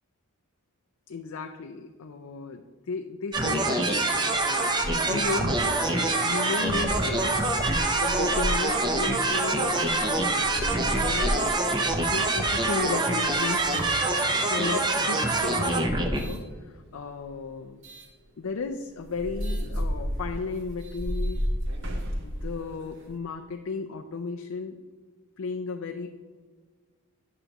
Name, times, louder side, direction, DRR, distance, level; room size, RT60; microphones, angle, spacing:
voice 1, 1.1-7.4 7.9-11.6 11.9-17.8 18.4-21.4 22.2-24.8 25.4-26.1, left 4 dB, 70° left, 4 dB, 0.5 m, -35 dB
sound 1, 3.3-16.3, right 2 dB, 20° right, 0.6 m, -25 dB
sound 2, 4.5-14.6 15.2-16.5 17.8-18.1 18.6-18.7 19.0-23.2, equal, 55° right, 1.1 m, -34 dB
11.0 x 6.5 x 2.9 m, 1.5 s
head